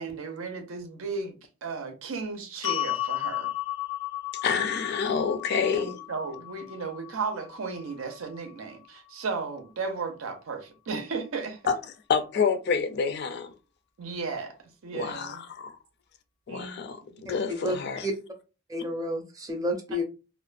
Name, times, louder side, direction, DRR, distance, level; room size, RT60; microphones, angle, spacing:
voice 1, 0.0-1.3 1.6-3.5 5.7-11.6 14.0-14.6 14.8-15.4 16.5-16.9 17.2-17.3, right 4 dB, 85° right, 0.6 m, -35 dB
sound 1, 2.6-8.8, left 14 dB, 90° left, 0.8 m, -35 dB
voice 2, 4.4-6.0 11.7-11.8 12.1-13.5 14.9-15.8 16.5-18.1, left 6 dB, 55° left, 0.4 m, -28 dB
voice 3, 17.3-17.7 18.0-18.1 18.7-20.0, left 1 dB, 20° right, 0.5 m, -30 dB
2.4 x 2.1 x 2.4 m
head